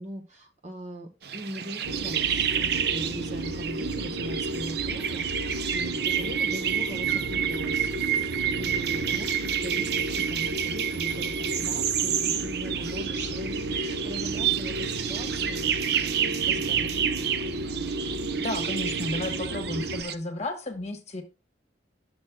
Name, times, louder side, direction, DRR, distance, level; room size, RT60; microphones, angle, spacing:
voice 1, 0.0-15.9 16.3-17.0, right 1 dB, 40° right, 1.2 m, -40 dB
sound 1, 1.2-20.1, right 9 dB, 60° right, 0.5 m, -29 dB
sound 2, 1.8-20.0, right 1 dB, 85° right, 1.1 m, -33 dB
voice 2, 18.4-21.2, left 2 dB, 40° left, 1.2 m, -33 dB
10.5 x 6.2 x 2.3 m
head